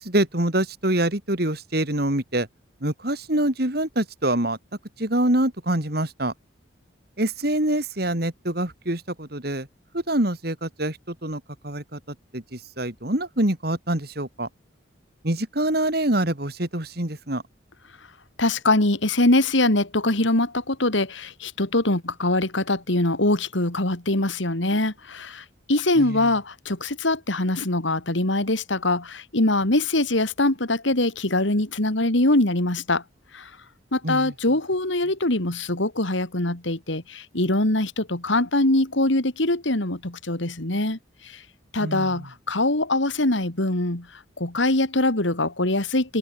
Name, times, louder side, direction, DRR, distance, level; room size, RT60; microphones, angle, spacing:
voice 1, 0.0-2.5 2.8-4.6 5.0-6.3 7.2-9.7 10.1-12.0 12.3-14.5 15.2-17.4 26.0-26.2 34.0-34.3 41.8-42.1, right 1 dB, 50° right, 2.9 m, -25 dB
voice 2, 18.4-33.0 33.3-33.5 33.9-41.0 41.7-44.1 44.4-46.2, left 2 dB, 75° left, 3.0 m, -23 dB
head